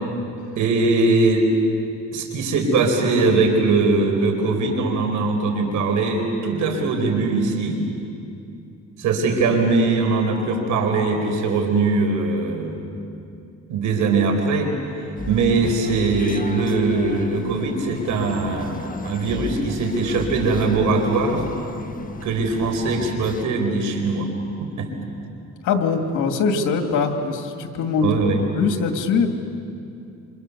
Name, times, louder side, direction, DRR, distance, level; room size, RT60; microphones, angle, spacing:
voice 1, 0.5-1.5 2.1-7.8 9.0-12.8 13.7-14.7 15.3-21.4 22.2-24.3 24.6-24.9 28.0-28.5, right 3 dB, 80° right, 4 dB, 4.6 m, -21 dB
sound 1, 15.2-23.4, left 3 dB, 25° left, 1.4 m, -34 dB
voice 2, 25.6-28.1 28.6-29.3, left 5 dB, 85° left, 5 dB, 2.5 m, -22 dB
28.5 x 26.5 x 7.0 m, 2.6 s
cardioid pair, 90°, 30 cm